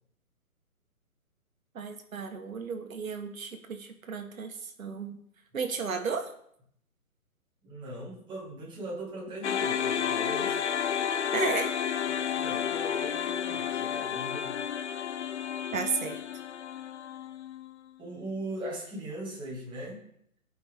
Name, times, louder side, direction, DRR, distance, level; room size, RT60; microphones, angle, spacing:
voice 1, 1.7-5.2 5.5-6.3 11.3-11.7 15.7-16.2, right 5 dB, 65° right, 6 dB, 1.6 m, -33 dB
voice 2, 7.6-10.6 12.1-14.6 16.0-16.1 18.0-20.0, right 1 dB, 10° right, -5 dB, 2.1 m, -40 dB
sound 1, 9.4-17.7, left 8 dB, 55° left, 0.7 m, -31 dB
14.5 x 5.6 x 3.7 m, 0.67 s
hypercardioid pair, 145°, 43 cm